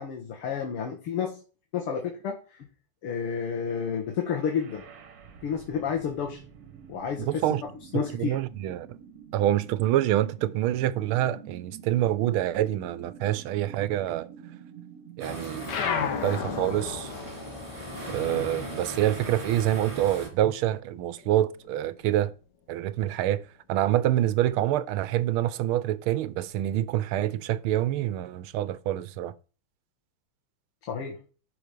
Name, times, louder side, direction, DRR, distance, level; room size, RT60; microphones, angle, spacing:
voice 1, 0.0-1.4 1.7-2.7 3.0-4.8 5.4-6.4 6.9-7.5 7.9-8.4 30.9-31.2, left 7 dB, 85° left, 2.4 m, -30 dB
sound 1, 4.1-18.1, right 8 dB, 50° right, 1.5 m, -49 dB
voice 2, 7.2-7.6 7.9-8.9 9.3-14.3 15.2-15.7 16.2-17.1 18.1-22.3 22.7-23.4 23.7-29.3, right 13 dB, 80° right, 1.5 m, -26 dB
sound 2, 15.2-20.3, right 1 dB, 15° right, 2.4 m, -39 dB
sound 3, 15.6-20.5 20.8-22.3, left 6 dB, 55° left, 1.6 m, -34 dB
11.0 x 5.0 x 5.2 m
omnidirectional pair, 2.4 m